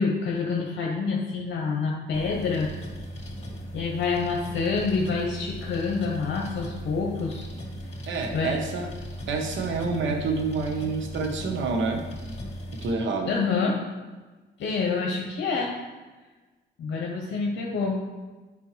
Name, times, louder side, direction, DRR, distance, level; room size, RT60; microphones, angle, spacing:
voice 1, 0.0-2.7 3.7-7.4 8.3-8.6 13.3-13.8 14.6-15.7 16.8-18.0, left 4 dB, 65° left, 0 dB, 0.9 m, -27 dB
sound 1, 2.1-12.9, equal, 30° left, 2.1 m, -38 dB
voice 2, 8.1-8.9 9.3-12.1 12.8-13.4, right 4 dB, 75° right, 4 dB, 1.1 m, -28 dB
9.2 x 5.4 x 3.2 m, 1.3 s
cardioid pair, 90°, 20 cm